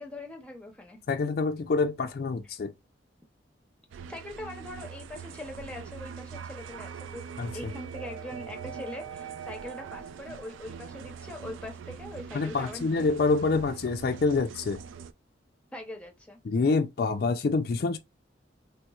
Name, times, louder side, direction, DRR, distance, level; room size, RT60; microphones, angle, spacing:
voice 1, 0.0-1.0 4.1-12.9 15.7-16.4, left 1 dB, 5° left, 0.7 m, -42 dB
voice 2, 1.1-2.7 7.4-7.7 12.3-14.8 16.4-18.0, left 4 dB, 50° left, 0.4 m, -26 dB
sound 1, 3.9-15.1, right 6 dB, 80° right, 0.3 m, -42 dB
3.3 x 2.9 x 2.3 m
head